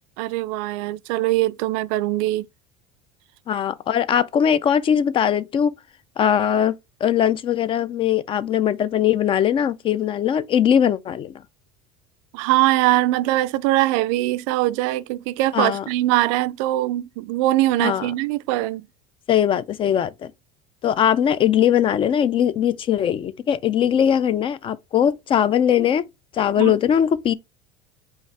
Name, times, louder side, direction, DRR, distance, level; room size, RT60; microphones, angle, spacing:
voice 1, 0.2-2.5 12.3-18.9 26.6-26.8, right 16 dB, 75° right, 0.4 m, -22 dB
voice 2, 3.5-5.7 6.2-6.7 7.0-11.3 15.5-15.8 17.8-18.1 19.3-20.3 20.8-26.0 26.3-27.3, left 9 dB, 30° left, 0.4 m, -20 dB
5.3 x 2.4 x 3.3 m
supercardioid pair, 120°, 17 cm